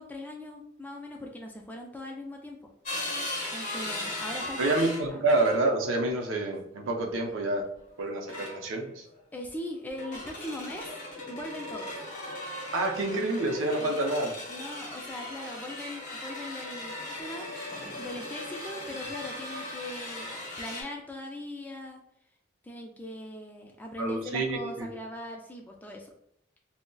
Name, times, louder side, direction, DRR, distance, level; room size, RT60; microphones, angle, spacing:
voice 1, 0.0-2.7 3.5-4.7 5.1-5.2 9.3-10.9 11.2-12.0 13.8-13.9 14.5-17.5 18.0-22.0 22.6-26.1, left 1 dB, 10° left, 1 dB, 0.3 m, -40 dB
sound 1, 2.8-5.8 7.0-7.3 8.3-8.9 9.9-20.8, left 1 dB, 40° left, 0.8 m, -38 dB
voice 2, 4.6-7.6 8.0-9.0 12.7-14.4 24.0-24.9, right 2 dB, 75° right, 3 dB, 0.5 m, -28 dB
3.8 x 2.0 x 2.2 m, 0.73 s
head